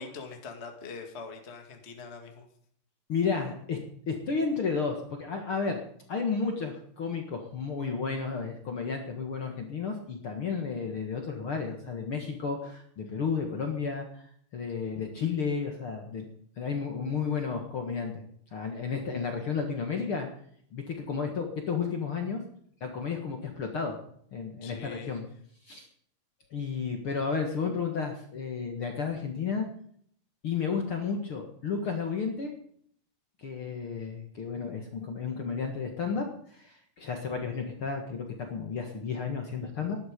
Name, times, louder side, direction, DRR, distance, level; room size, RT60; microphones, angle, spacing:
voice 1, 0.0-2.5 14.8-15.0 24.6-25.2, left 4 dB, 25° left, 4 dB, 1.8 m, -43 dB
voice 2, 3.1-3.8 4.1-5.8 6.1-14.3 14.5-16.3 16.6-18.2 18.5-20.3 20.7-22.4 22.8-24.0 24.3-25.2 25.6-25.9 26.5-29.7 30.4-32.5 33.4-40.0, left 5 dB, 45° left, 3 dB, 2.1 m, -32 dB
19.0 x 11.5 x 5.3 m, 0.63 s
omnidirectional pair, 4.0 m